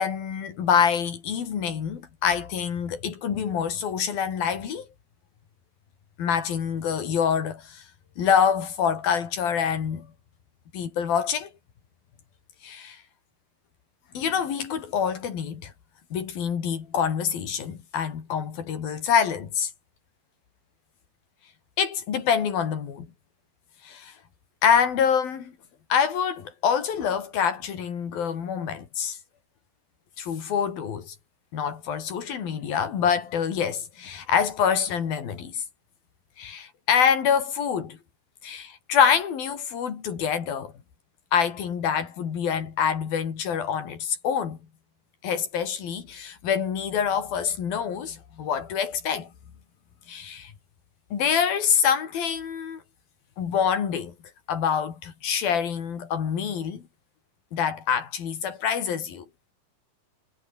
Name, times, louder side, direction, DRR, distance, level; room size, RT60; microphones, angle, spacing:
voice 1, 0.0-4.9 6.2-7.8 8.2-10.1 10.7-11.5 12.6-13.0 14.1-15.7 16.1-19.7 21.8-23.1 23.8-24.1 24.6-25.5 25.9-29.2 30.2-31.2 31.5-35.6 36.4-38.0 38.4-40.7 41.3-44.6 45.2-49.3 50.1-50.5 51.1-52.8 53.4-54.1 54.5-56.8 57.5-59.2, left 7 dB, 75° left, 5.0 m, -26 dB
omnidirectional pair, 4.2 m